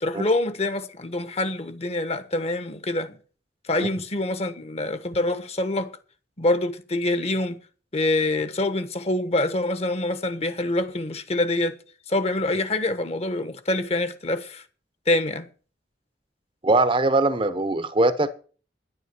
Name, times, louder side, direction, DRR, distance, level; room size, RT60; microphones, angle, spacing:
voice 1, 0.0-3.2 3.7-5.9 6.4-7.6 7.9-11.8 12.1-14.6 15.1-15.5, left 2 dB, 35° left, 1.3 m, -25 dB
voice 2, 16.6-18.3, right 2 dB, 30° right, 0.9 m, -21 dB
11.0 x 10.5 x 6.1 m
head